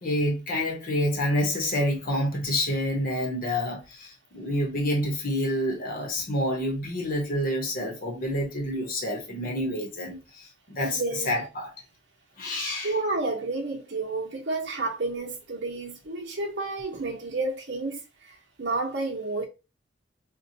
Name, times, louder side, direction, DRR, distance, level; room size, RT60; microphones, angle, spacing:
voice 1, 0.0-11.0 11.3-11.7 12.4-12.9, left 1 dB, 50° left, 0.9 m, -28 dB
voice 2, 10.8-11.4 12.5-19.4, right 3 dB, 75° right, 0.8 m, -31 dB
4.3 x 2.2 x 2.7 m
head